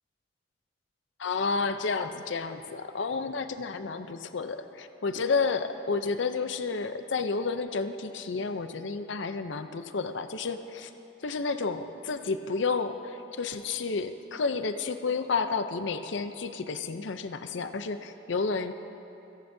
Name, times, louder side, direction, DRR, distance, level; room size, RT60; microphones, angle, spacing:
voice 1, 1.2-10.9 11.2-18.7, left 4 dB, 70° left, 9 dB, 0.6 m, -31 dB
29.0 x 10.5 x 2.7 m, 2.9 s
head